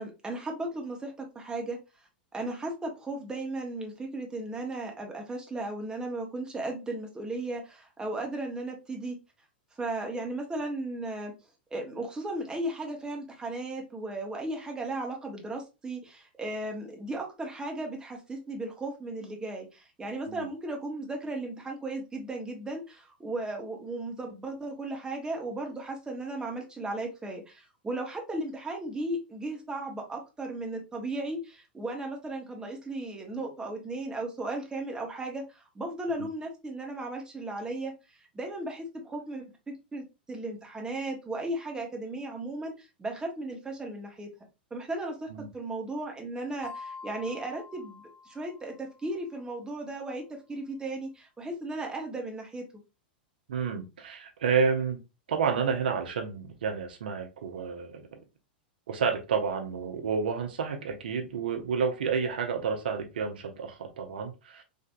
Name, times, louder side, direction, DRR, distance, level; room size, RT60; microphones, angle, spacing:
voice 1, 0.0-1.8 2.3-9.2 9.8-11.3 11.7-44.3 44.7-45.3 45.5-52.6, right 2 dB, 15° right, 1.0 m, -36 dB
sound 1, 46.6-49.1, left 4 dB, 25° left, 0.6 m, -46 dB
voice 2, 53.5-55.0 55.3-58.2 58.9-64.6, right 6 dB, 70° right, 0.7 m, -30 dB
3.4 x 2.6 x 2.4 m
figure-of-eight pair, 95°, 5 cm